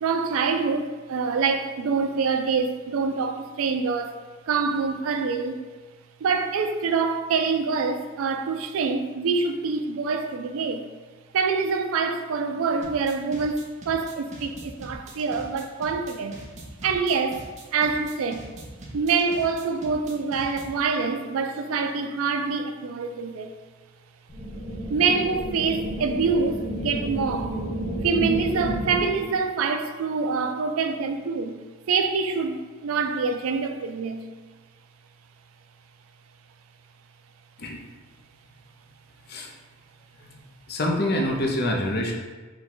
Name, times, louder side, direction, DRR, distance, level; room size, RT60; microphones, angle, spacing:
voice 1, 0.0-4.1 4.5-5.6 6.2-10.8 11.3-16.4 16.8-17.4 17.7-18.4 18.9-23.5 24.9-27.6 28.0-31.6 31.9-34.2, right 5 dB, 85° right, 0.4 m, -25 dB
sound 1, 12.8-20.8, right 1 dB, 35° right, 0.6 m, -42 dB
sound 2, 24.3-29.3, right 1 dB, 30° left, 1.0 m, -31 dB
voice 2, 40.7-42.1, left 1 dB, 50° left, 0.6 m, -26 dB
4.5 x 2.2 x 3.8 m
head